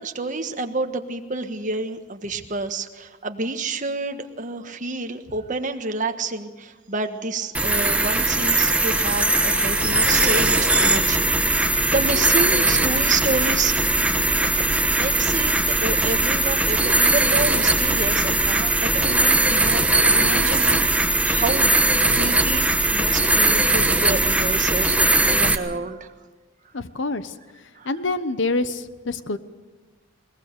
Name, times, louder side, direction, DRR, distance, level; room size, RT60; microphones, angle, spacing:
voice 1, 0.0-11.7 11.9-13.7 14.4-14.6 15.0-15.5 15.8-19.8 20.1-21.7 22.1-22.6 22.9-26.1 27.7-27.9, right 3 dB, 40° right, 6 dB, 1.4 m, -29 dB
sound 1, 7.5-25.5, right 2 dB, 5° right, 1.1 m, -20 dB
voice 2, 19.5-20.1 26.7-27.3 27.8-29.4, left 3 dB, 65° left, 13 dB, 1.0 m, -28 dB
21.5 x 20.0 x 6.7 m, 1.3 s
head